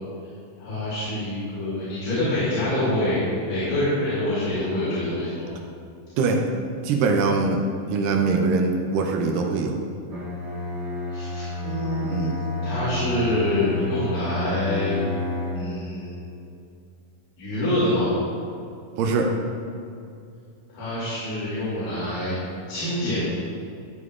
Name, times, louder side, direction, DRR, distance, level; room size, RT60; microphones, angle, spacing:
voice 1, 0.6-5.5 11.1-12.3 12.6-14.9 15.5-16.3 17.4-18.1 20.7-22.4 22.7-23.2, left 1 dB, 75° left, -11 dB, 4.3 m, -26 dB
voice 2, 6.8-7.6 7.9-9.8 12.0-12.4 19.0-19.3, right 4 dB, 80° right, 2 dB, 2.3 m, -22 dB
Bowed string instrument, 10.1-15.8, left 2 dB, 55° right, 3.6 m, -30 dB
13.0 x 9.4 x 2.4 m, 2.5 s
omnidirectional pair, 4.0 m